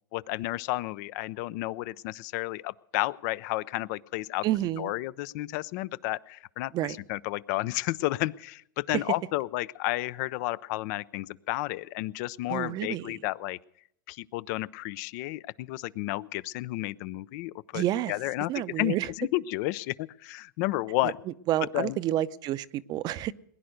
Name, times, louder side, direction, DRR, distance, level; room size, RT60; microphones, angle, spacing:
voice 1, 0.1-4.4 4.8-6.7 7.1-13.6 14.1-17.8 18.1-21.2 21.7-22.0, left 17 dB, 55° left, 0.5 m, -32 dB
voice 2, 4.4-4.9 6.7-7.0 8.9-9.0 12.5-13.1 17.7-18.1 18.5-19.1 21.0-21.1 21.5-23.3, right 13 dB, 40° right, 0.6 m, -29 dB
20.5 x 10.5 x 6.5 m
hypercardioid pair, 110°, 11 cm